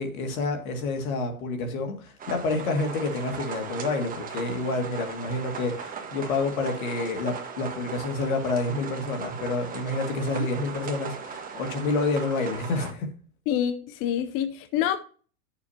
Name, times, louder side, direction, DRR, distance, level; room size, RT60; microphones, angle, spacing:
voice 1, 0.0-13.1, left 3 dB, 75° left, 2.1 m, -28 dB
sound 1, 2.2-12.9, right 6 dB, 20° right, 1.3 m, -38 dB
voice 2, 13.5-15.0, left 10 dB, 30° left, 0.6 m, -27 dB
11.0 x 6.9 x 2.8 m
hypercardioid pair, 130°, 43 cm